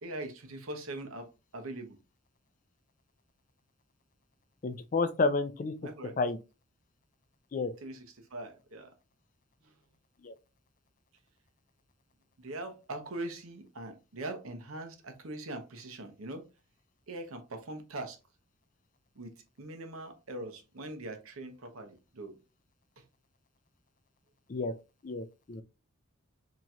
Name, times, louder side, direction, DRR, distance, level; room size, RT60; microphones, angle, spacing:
voice 1, 0.0-2.0 5.8-6.2 7.8-8.9 9.6-9.7 12.4-16.4 17.1-18.2 19.2-19.3 19.6-22.4, right 2 dB, 85° right, 0.9 m, -42 dB
voice 2, 4.6-5.7 6.2-6.4 7.5-7.7 10.2-10.3 24.5-24.7 25.0-25.6, left 3 dB, 40° left, 0.4 m, -30 dB
4.3 x 2.9 x 2.4 m
head